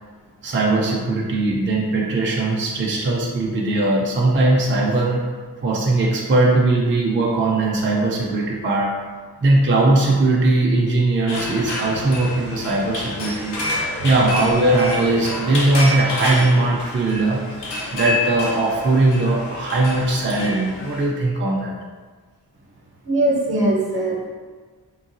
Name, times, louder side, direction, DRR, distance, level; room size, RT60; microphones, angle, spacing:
voice 1, 0.4-5.3 5.6-9.0 9.4-13.6 14.0-17.6 17.9-21.7, right 2 dB, 30° right, -2 dB, 0.4 m, -19 dB
sound 1, 11.3-21.1, left 1 dB, 85° left, 0.6 m, -28 dB
voice 2, 23.1-24.3, right 1 dB, 65° right, -3 dB, 0.8 m, -21 dB
3.8 x 2.3 x 2.5 m, 1.5 s
wide cardioid pair, 65°, 41 cm